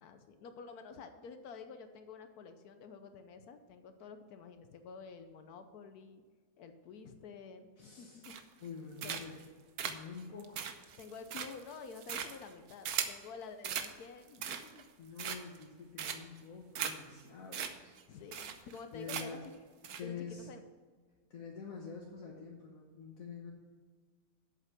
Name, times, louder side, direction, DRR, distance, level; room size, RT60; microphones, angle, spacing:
voice 1, 0.0-6.2 6.6-8.3 9.0-9.2 11.0-14.9 18.1-19.5 20.0-20.6, left 5 dB, 85° left, 8 dB, 1.3 m, -50 dB
voice 2, 7.8-8.3 8.6-9.4 9.8-10.7 15.0-17.9 18.9-19.4 20.0-20.5 21.3-23.5, left 5 dB, 65° left, -1 dB, 1.5 m, -46 dB
sound 1, 8.2-8.7 9.0-9.4 9.8-13.2 13.6-13.9 14.3-14.8 15.2-15.6 16.0-16.4 16.7-16.9 17.2-17.3 17.5-17.7 18.0-18.1 18.3-18.8 19.1-19.5 19.8-20.0, right 8 dB, 80° right, 1.3 m, -38 dB
8.1 x 7.4 x 6.0 m, 1.5 s
omnidirectional pair, 1.6 m